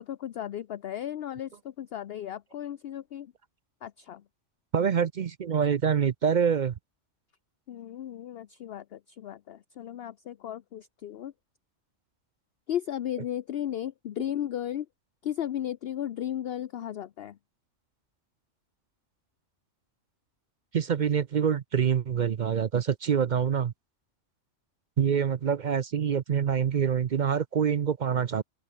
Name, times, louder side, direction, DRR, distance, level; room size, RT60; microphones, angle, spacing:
voice 1, 0.0-3.3 3.8-4.2 7.7-11.3 12.7-14.9 15.2-17.4, left 11 dB, 60° left, 0.8 m, -35 dB
voice 2, 4.7-6.7 20.7-23.7 25.0-28.4, right 7 dB, 50° right, 0.6 m, -26 dB
open air
omnidirectional pair, 1.3 m